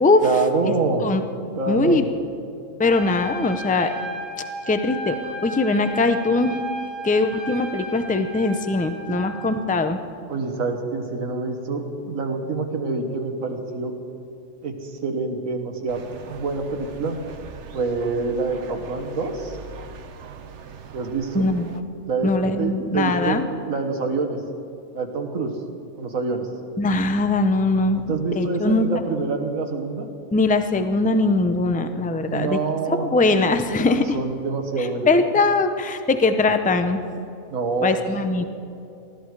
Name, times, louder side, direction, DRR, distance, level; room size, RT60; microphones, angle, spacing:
voice 1, 0.2-1.0 1.5-2.1 10.3-13.9 14.6-16.0 16.3-17.2 17.7-19.6 20.9-21.5 22.0-24.4 24.9-25.5 26.0-26.5 27.9-30.1 32.3-33.1 34.1-35.1 37.5-38.0, right 4 dB, 85° right, 4 dB, 1.8 m, -26 dB
voice 2, 1.7-2.0 2.8-3.9 4.7-5.2 5.4-6.6 7.0-10.0 21.3-21.8 22.2-23.4 26.8-29.0 30.3-32.6 32.9-34.2 34.8-37.0 37.8-38.4, left 3 dB, 10° left, 8 dB, 0.5 m, -21 dB
Trumpet, 2.8-9.5, right 1 dB, 35° left, 3.6 m, -34 dB
sound 1, 15.9-21.8, right 6 dB, 65° right, 1.1 m, -41 dB
20.0 x 13.5 x 4.8 m, 2.6 s
omnidirectional pair, 1.4 m